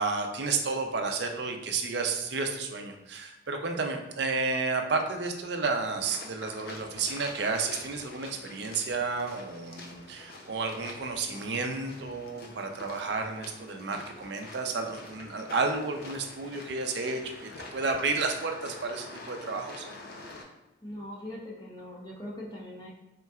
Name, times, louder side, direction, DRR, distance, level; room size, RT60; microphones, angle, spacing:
voice 1, 0.0-19.9, right 4 dB, 55° right, 4 dB, 0.5 m, -31 dB
sound 1, 6.0-20.4, left 2 dB, 50° left, 0.6 m, -46 dB
voice 2, 20.8-22.9, left 1 dB, 20° left, -4 dB, 0.8 m, -41 dB
4.2 x 3.7 x 2.3 m, 1.0 s
head